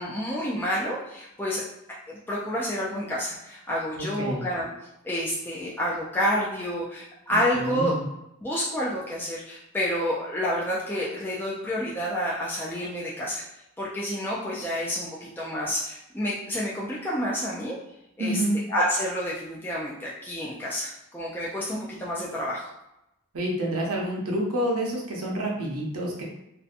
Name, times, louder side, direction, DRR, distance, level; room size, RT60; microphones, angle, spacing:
voice 1, 0.0-1.6 2.1-4.7 5.0-8.0 8.4-13.4 13.8-17.8 18.2-18.4 18.7-22.7, equal, 10° left, -6 dB, 0.3 m, -29 dB
voice 2, 4.0-4.4 7.3-8.0 18.2-18.5 23.3-26.2, right 1 dB, 80° right, -2 dB, 0.7 m, -28 dB
2.6 x 2.1 x 2.4 m, 0.86 s
head